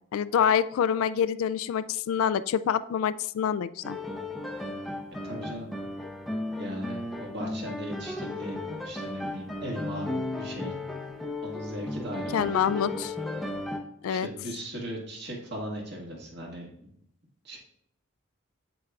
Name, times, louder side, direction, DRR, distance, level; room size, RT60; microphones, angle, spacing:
voice 1, 0.1-4.0 12.3-13.1 14.0-14.3, left 8 dB, 80° left, 15 dB, 0.3 m, -26 dB
sound 1, 3.8-13.8, left 1 dB, ahead, 0.6 m, -35 dB
voice 2, 5.2-5.7 6.6-10.7 11.4-12.8 14.1-16.9 17.4-17.6, equal, 55° right, -1 dB, 1.7 m, -38 dB
7.9 x 7.8 x 2.4 m, 0.71 s
head